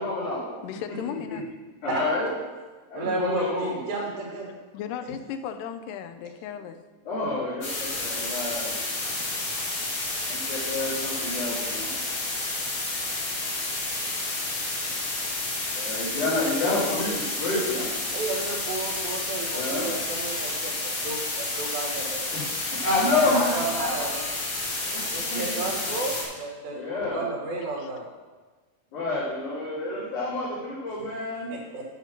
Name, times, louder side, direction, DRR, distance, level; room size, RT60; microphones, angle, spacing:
voice 1, 0.0-0.5 1.3-1.4 1.8-2.3 2.9-3.8 7.1-8.8 10.3-12.0 15.8-17.9 19.5-19.9 22.3-22.4 22.8-24.1 24.8-25.0 25.3-25.4 26.7-27.3 28.9-31.5, left 2 dB, 60° left, -12 dB, 3.9 m, -28 dB
voice 2, 0.6-1.5 4.7-6.8 7.9-8.7 9.3-9.4 18.1-18.2 27.8-27.9, left 8 dB, 80° left, 8 dB, 2.2 m, -37 dB
voice 3, 2.9-4.6 17.5-17.6 18.1-22.2 23.2-24.2 25.1-28.1 31.5-31.9, right 3 dB, 80° right, -2 dB, 3.2 m, -32 dB
sound 1, 7.6-26.2, left 2 dB, 45° left, 2.1 m, -30 dB
8.1 x 7.3 x 6.0 m, 1.3 s
omnidirectional pair, 4.1 m